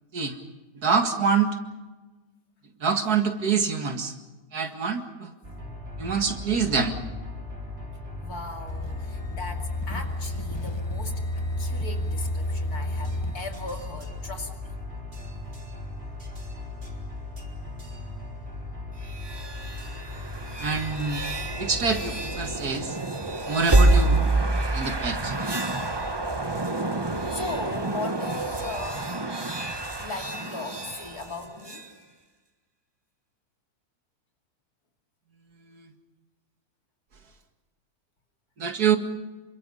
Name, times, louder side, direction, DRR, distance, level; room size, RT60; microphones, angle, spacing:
voice 1, 0.8-1.6 2.8-4.1 4.5-5.3 6.0-7.0 20.6-21.3 21.6-23.0 23.5-24.2 24.7-25.4 35.7-35.9 38.6-39.0, right 5 dB, 85° right, 5 dB, 2.5 m, -25 dB
sound 1, 5.4-22.6, left 2 dB, 40° right, 4.0 m, -38 dB
voice 2, 8.2-11.2 11.6-14.7 27.3-29.1 30.0-31.8, left 3 dB, 80° left, 3 dB, 3.2 m, -37 dB
sound 2, 8.7-13.7, left 1 dB, 25° left, 0.7 m, -31 dB
sound 3, 19.0-31.9, right 2 dB, 20° right, 1.1 m, -27 dB
28.0 x 24.5 x 5.6 m, 1.2 s
omnidirectional pair, 1.6 m